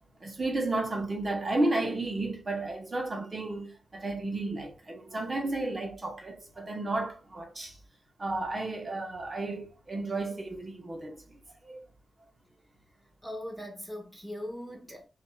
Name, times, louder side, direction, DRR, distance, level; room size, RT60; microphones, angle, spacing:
voice 1, 0.2-7.8 8.2-11.4 11.6-11.8, right 2 dB, 30° right, 1.2 m, -32 dB
voice 2, 13.2-15.1, equal, ahead, 1.2 m, -40 dB
6.1 x 2.9 x 2.3 m
wide cardioid pair, 155°, 0 cm